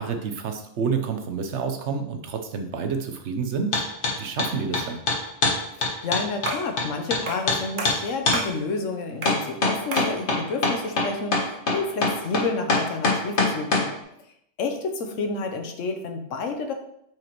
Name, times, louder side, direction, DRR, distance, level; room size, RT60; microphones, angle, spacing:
voice 1, 0.0-3.8 4.2-5.0, right 5 dB, 70° right, 6 dB, 1.1 m, -29 dB
sound 1, 3.7-4.1 4.4-7.2 7.5-7.6 7.8-8.0 8.3-8.4 9.3-13.9, left 3 dB, 65° left, 1.5 m, -22 dB
voice 2, 5.8-13.9 14.6-16.7, left 3 dB, 90° left, 5 dB, 1.2 m, -30 dB
sound 2, 6.5-6.8 7.3-7.5 7.8-8.6 9.2-9.5 9.9-10.2, right 2 dB, 45° right, 0.8 m, -31 dB
7.7 x 4.8 x 3.0 m, 0.76 s
omnidirectional pair, 1.3 m